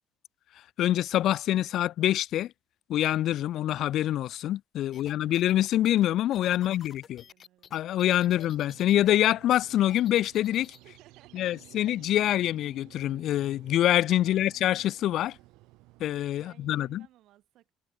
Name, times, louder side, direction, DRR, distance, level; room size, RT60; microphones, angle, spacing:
voice 1, 0.8-2.5 2.9-7.2 7.7-10.7 11.3-15.4 16.0-17.0, left 13 dB, 65° left, 0.3 m, -25 dB
sound 1, 4.9-9.1 9.4-10.8, left 8 dB, 45° left, 3.2 m, -52 dB
voice 2, 4.9-5.3 6.6-7.9 8.2-8.4 10.8-11.5 14.2-14.6 16.4-17.7, right 14 dB, 70° right, 4.8 m, -59 dB
sound 2, 8.1-16.2, right 21 dB, 85° right, 1.5 m, -54 dB
cardioid pair, 105°, 0 cm